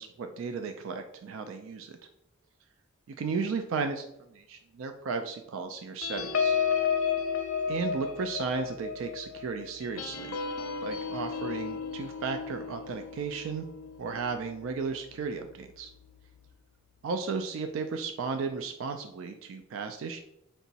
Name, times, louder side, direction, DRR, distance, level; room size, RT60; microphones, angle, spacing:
voice 1, 0.0-2.0 3.2-6.6 7.7-10.4 10.8-13.7 14.0-15.9 17.0-20.2, right 5 dB, 70° right, 6 dB, 0.3 m, -34 dB
sound 1, 6.0-14.9 15.4-15.6 15.9-16.2, left 6 dB, 85° left, 0.5 m, -33 dB
4.4 x 2.9 x 2.7 m, 0.78 s
head